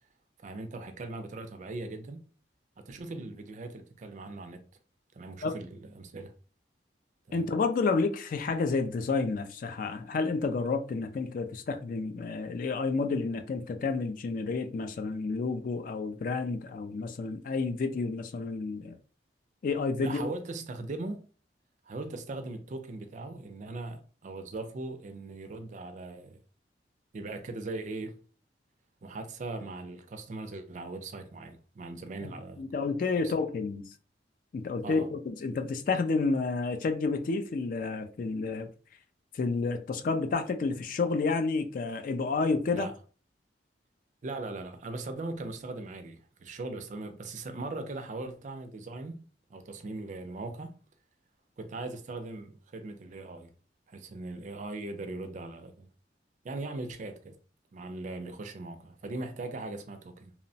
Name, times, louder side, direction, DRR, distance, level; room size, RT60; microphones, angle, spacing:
voice 1, 0.4-2.3 2.8-4.6 5.1-6.3 7.3-7.5 20.0-21.2 21.9-26.4 27.1-28.2 29.0-32.6 33.1-33.3 34.8-35.1 42.7-42.9 44.2-50.8 51.6-53.5 53.9-55.9 56.4-57.4 57.7-60.3, right 2 dB, 40° right, 0.4 m, -39 dB
voice 2, 7.3-19.0 19.6-20.2 32.2-32.3 32.6-33.9 34.5-38.7 39.3-42.9, left 4 dB, 50° left, 0.3 m, -30 dB
2.9 x 2.0 x 2.6 m
head